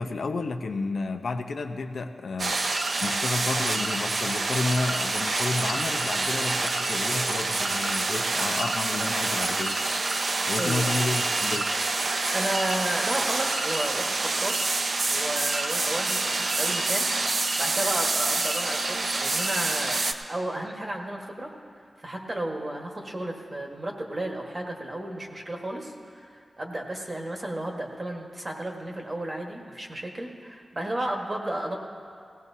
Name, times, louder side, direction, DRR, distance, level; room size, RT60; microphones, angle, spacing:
voice 1, 0.0-2.6 3.0-9.8 10.5-11.7, left 3 dB, 75° left, 6 dB, 0.7 m, -31 dB
sound 1, 2.4-20.1, right 3 dB, 55° right, 0.6 m, -27 dB
voice 2, 10.6-10.9 12.3-14.5 15.1-17.1 17.6-21.5 22.0-31.8, right 1 dB, 30° right, 0 dB, 1.4 m, -33 dB
18.0 x 16.5 x 2.7 m, 2.2 s
wide cardioid pair, 140°, 0 cm